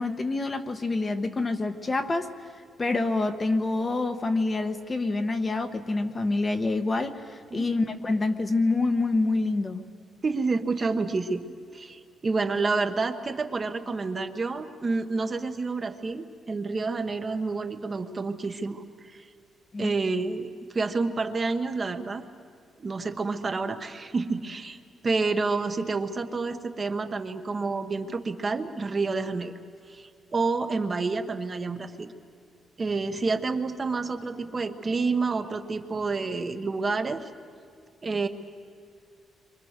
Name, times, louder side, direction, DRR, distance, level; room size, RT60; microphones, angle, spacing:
voice 1, 0.0-2.3 2.8-9.8 19.7-19.9, left 3 dB, 20° left, 7 dB, 1.1 m, -27 dB
voice 2, 10.2-11.4 11.7-19.3 19.8-22.2 22.8-24.8 25.0-29.5 29.9-32.1 32.8-37.3 38.0-38.3, right 3 dB, 25° right, 6 dB, 1.2 m, -29 dB
29.5 x 24.5 x 6.6 m, 2.3 s
cardioid pair, 165°, 0 cm